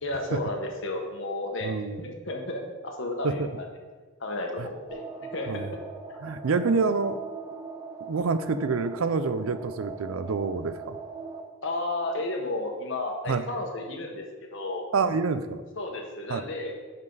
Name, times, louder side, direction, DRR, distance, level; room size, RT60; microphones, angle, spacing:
voice 1, 0.0-3.5 4.2-5.0 5.3-5.7 11.6-14.2 14.5-14.9 15.8-16.9, left 2 dB, 60° left, 2 dB, 1.4 m, -32 dB
voice 2, 1.6-2.1 3.2-3.5 4.6-4.7 5.5-5.7 6.2-7.2 8.0-11.0 13.3-13.5 14.9-15.6 16.3-16.4, right 4 dB, 75° right, 12 dB, 0.5 m, -27 dB
sound 1, 4.9-11.4, right 4 dB, 15° right, 0.8 m, -41 dB
10.5 x 5.3 x 4.0 m, 1.4 s
head